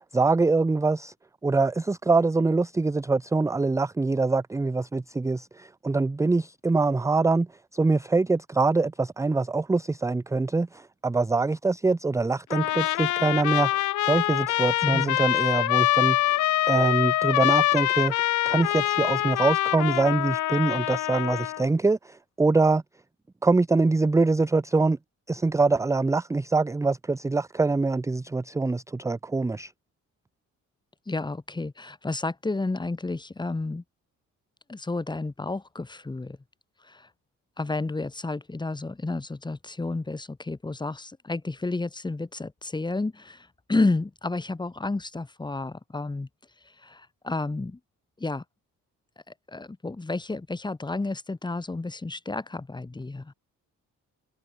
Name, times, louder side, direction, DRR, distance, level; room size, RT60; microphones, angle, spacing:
voice 1, 0.1-1.1 1.4-16.4 16.7-18.1 18.5-22.8 23.4-25.0 25.3-29.7, right 3 dB, 10° right, 0.5 m, -24 dB
Trumpet, 12.5-21.6, left 15 dB, 75° left, 0.8 m, -25 dB
voice 2, 14.8-15.2 31.1-33.8 34.7-36.4 36.8-37.1 37.6-46.3 46.8-47.8 48.2-48.4 49.5-53.3, left 3 dB, 15° left, 1.3 m, -31 dB
cardioid pair, 90°, 30 cm